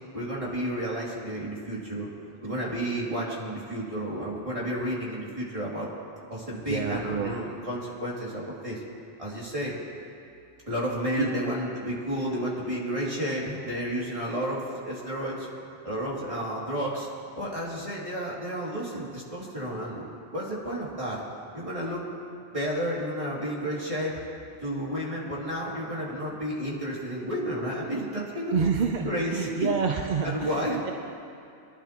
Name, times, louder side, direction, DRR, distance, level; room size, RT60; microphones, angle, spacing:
voice 1, 0.1-2.1 2.4-5.9 6.3-8.8 9.2-9.8 10.7-15.5 15.8-17.1 17.4-21.2 21.5-22.1 22.5-24.2 24.6-28.6 29.0-29.7 30.2-30.9, equal, 25° right, -6 dB, 2.7 m, -31 dB
voice 2, 6.5-7.4 11.2-11.3 28.5-30.9, right 5 dB, 50° right, 3 dB, 0.6 m, -28 dB
24.0 x 11.5 x 3.0 m, 2.5 s
omnidirectional pair, 1.3 m